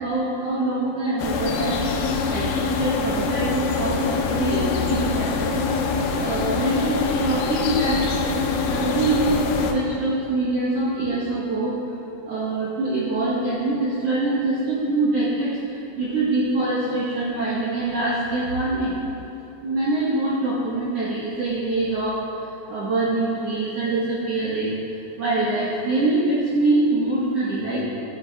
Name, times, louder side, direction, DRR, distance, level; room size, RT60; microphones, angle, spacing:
voice 1, 0.0-1.8 2.3-2.4 2.8-5.5 6.2-6.9 7.2-8.0 8.7-11.7 12.3-15.5 16.0-18.9 19.6-22.1 22.7-24.7 25.2-27.8, right 2 dB, 70° right, -7 dB, 1.5 m, -24 dB
sound 1, 1.2-9.7, left 4 dB, 85° left, 2.5 m, -24 dB
14.0 x 9.5 x 2.3 m, 2.9 s
omnidirectional pair, 4.4 m